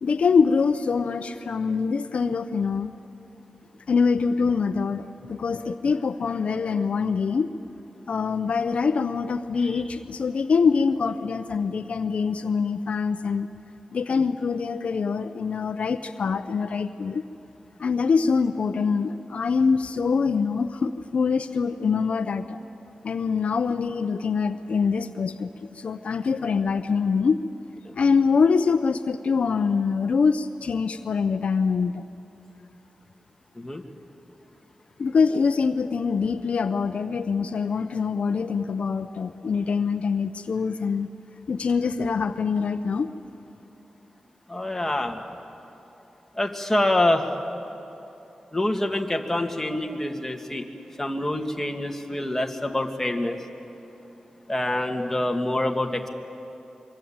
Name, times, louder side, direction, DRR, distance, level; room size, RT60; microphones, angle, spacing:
voice 1, 0.0-2.9 3.9-7.5 8.1-13.5 13.9-17.2 17.8-22.6 23.0-27.4 27.9-32.0 35.0-41.1 41.5-43.1, left 5 dB, 75° left, 10 dB, 0.7 m, -24 dB
voice 2, 44.5-45.2 46.4-47.2 48.5-50.6 51.0-53.4 54.5-56.1, left 1 dB, 15° left, 3 dB, 2.1 m, -26 dB
24.5 x 24.0 x 8.9 m, 2.9 s
wide cardioid pair, 75°, 2 cm